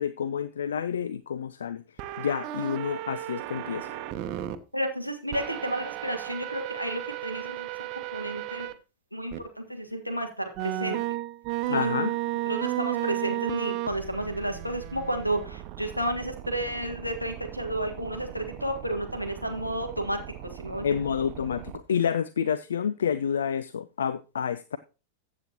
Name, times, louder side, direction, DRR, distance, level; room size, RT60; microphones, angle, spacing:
voice 1, 0.0-1.8 2.2-4.0 11.7-12.1 20.8-24.8, left 7 dB, 65° left, 15 dB, 0.4 m, -29 dB
sound 1, 2.0-4.6 5.3-8.7 9.3-9.4 10.6-21.8, right 14 dB, 40° right, 0.9 m, -35 dB
voice 2, 4.7-7.7 7.9-8.7 9.1-11.0 11.7-12.1 12.5-20.2 20.6-21.0, right 1 dB, 90° left, 6 dB, 1.6 m, -32 dB
14.5 x 8.1 x 2.9 m, 0.32 s
figure-of-eight pair, 90°, 0 cm